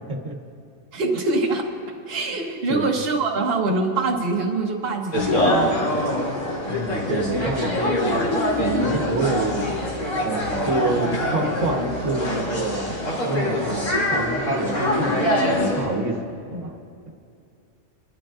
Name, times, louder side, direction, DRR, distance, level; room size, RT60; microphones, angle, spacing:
voice 1, 0.9-1.7 2.1-5.9, right 3 dB, 50° right, -1 dB, 1.4 m, -24 dB
sound 1, 5.1-15.9, left 1 dB, 80° left, 3.0 m, -24 dB
voice 2, 6.7-8.1 8.6-9.7 10.2-12.9 13.2-16.2 16.5-16.7, right 2 dB, 70° right, -1 dB, 1.6 m, -27 dB
29.0 x 11.5 x 2.5 m, 2.4 s
omnidirectional pair, 1.3 m